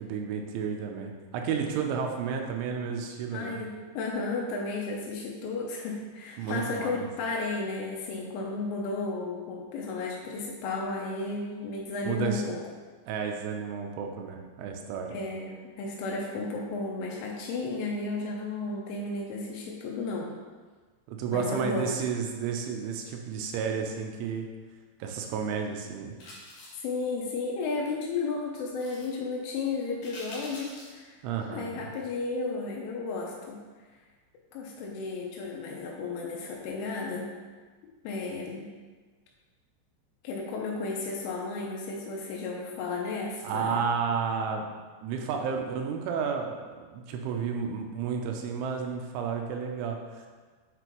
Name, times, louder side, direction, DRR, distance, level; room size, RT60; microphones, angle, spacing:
voice 1, 0.0-3.6 6.4-7.1 12.0-12.5 13.1-15.1 21.1-24.5 25.0-26.2 31.2-31.9 43.4-44.7 45.0-50.3, right 6 dB, 85° right, 2 dB, 3.1 m, -32 dB
voice 2, 3.3-12.6 15.1-20.3 21.3-21.9 26.7-31.2 31.5-33.6 34.5-37.3 38.0-38.7 40.2-43.8, left 3 dB, 85° left, -2 dB, 3.3 m, -33 dB
sound 1, 26.2-26.9 28.8-29.1 30.0-31.0 31.4-31.5, left 1 dB, 50° left, 3.0 m, -45 dB
7.9 x 5.9 x 3.0 m, 1.4 s
omnidirectional pair, 5.5 m